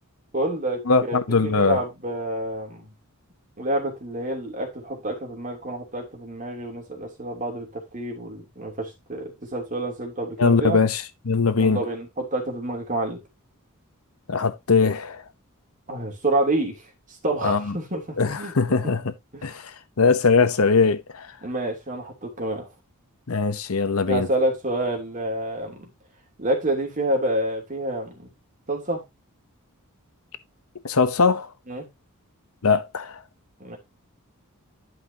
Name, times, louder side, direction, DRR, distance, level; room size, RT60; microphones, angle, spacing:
voice 1, 0.3-2.9 3.6-10.8 11.6-13.2 15.9-16.8 17.2-18.5 18.8-18.9 19.3-19.5 21.4-22.7 24.1-25.9 26.4-28.3 28.7-29.0 31.7-31.9 33.6-33.8, right 1 dB, 35° right, 2.9 m, -28 dB
voice 2, 0.9-1.8 10.4-11.8 14.3-15.2 17.4-17.7 18.2-19.0 19.4-19.7 20.0-21.3 23.3-24.3 30.8-31.5 32.6-33.2, left 4 dB, 70° left, 0.8 m, -21 dB
11.0 x 5.6 x 2.8 m
head